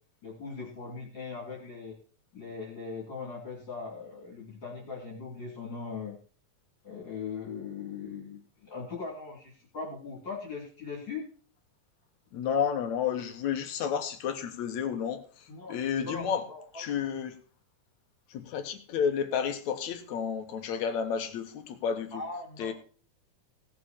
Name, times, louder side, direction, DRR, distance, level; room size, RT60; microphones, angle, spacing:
voice 1, 0.2-1.9 2.3-6.2 6.8-11.2 15.5-15.8 16.0-16.8 22.1-22.7, left 4 dB, 35° left, -3 dB, 3.7 m, -40 dB
voice 2, 12.3-15.2 15.7-16.4 16.7-17.3 18.3-22.2 22.6-22.7, left 7 dB, 70° left, 8 dB, 2.4 m, -31 dB
17.5 x 6.9 x 4.4 m, 0.40 s
omnidirectional pair, 3.5 m